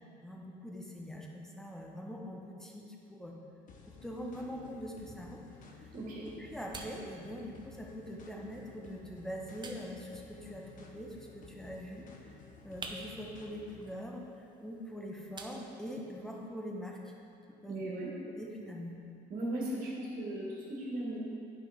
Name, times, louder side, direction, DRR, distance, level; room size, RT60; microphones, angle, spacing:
voice 1, 0.2-3.3 4.0-5.4 5.8-5.9 6.2-12.1 12.6-17.0 17.6-17.8 18.4-18.9, equal, 5° left, -1 dB, 1.0 m, -43 dB
sound 1, 3.7-14.0, left 4 dB, 50° left, 0.9 m, -55 dB
sound 2, 4.5-16.5, right 3 dB, 25° right, 0.7 m, -53 dB
voice 2, 5.9-6.3 17.7-18.1 19.3-21.2, right 1 dB, 50° right, -5 dB, 1.9 m, -37 dB
10.5 x 5.8 x 3.6 m, 2.6 s
cardioid pair, 110°, 17 cm